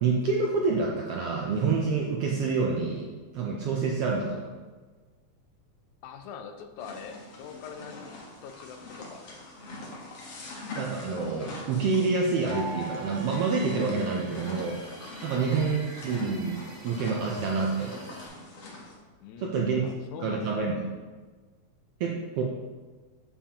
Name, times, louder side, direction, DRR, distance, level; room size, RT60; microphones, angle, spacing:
voice 1, 0.0-4.5 10.8-18.2 19.4-19.9 20.2-20.7 22.0-22.4, right 4 dB, 75° right, -1 dB, 1.4 m, -28 dB
voice 2, 6.0-8.1 8.4-9.3 15.3-15.6 19.2-20.6, left 7 dB, 85° left, 7 dB, 2.1 m, -43 dB
sound 1, 6.8-18.9, left 2 dB, 60° left, 2.0 m, -43 dB
sound 2, 12.5-18.3, right 2 dB, 60° right, 1.9 m, -43 dB
7.1 x 7.0 x 2.9 m, 1.4 s
omnidirectional pair, 3.3 m